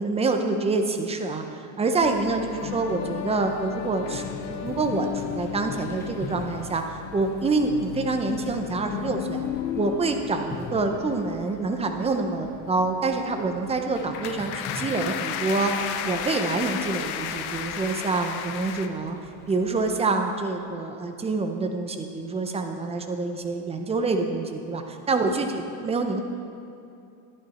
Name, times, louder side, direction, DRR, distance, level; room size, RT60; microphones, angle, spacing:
voice 1, 0.0-1.4 1.8-9.4 9.7-15.8 16.0-19.2 19.5-26.2, right 3 dB, 15° right, 5 dB, 0.6 m, -26 dB
sound 1, 2.0-18.9, left 9 dB, 65° left, 0.8 m, -34 dB
sound 2, 4.1-20.1, left 2 dB, 5° left, 1.0 m, -44 dB
11.5 x 11.0 x 4.2 m, 2.6 s
cardioid pair, 150°, 43 cm